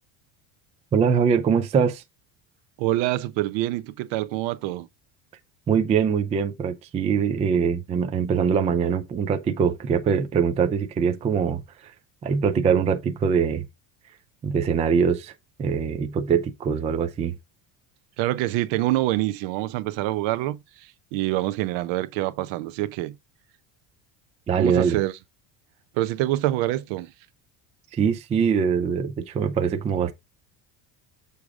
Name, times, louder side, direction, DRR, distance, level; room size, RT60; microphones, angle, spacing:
voice 1, 0.9-2.0 5.7-11.9 12.2-13.7 14.4-15.3 15.6-17.4 24.5-25.0 27.9-30.1, right 6 dB, 15° right, 0.3 m, -23 dB
voice 2, 2.8-4.9 18.2-23.1 24.6-25.1 25.9-27.1, right 16 dB, 70° right, 0.8 m, -26 dB
6.9 x 4.8 x 3.6 m
cardioid pair, 150°, 45 cm